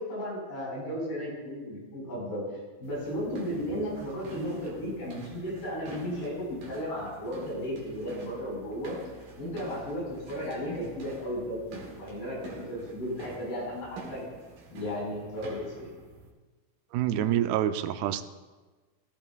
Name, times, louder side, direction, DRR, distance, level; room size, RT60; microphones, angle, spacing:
voice 1, 0.0-2.4 2.8-9.0 9.4-12.4 12.7-14.2 14.7-15.9, equal, 75° left, -5 dB, 6.7 m, -34 dB
sound 1, 2.8-16.3, right 2 dB, 60° right, 3.0 m, -47 dB
voice 2, 16.9-18.2, right 11 dB, 85° right, 10 dB, 2.6 m, -27 dB
17.0 x 14.0 x 2.3 m, 1.3 s
omnidirectional pair, 4.5 m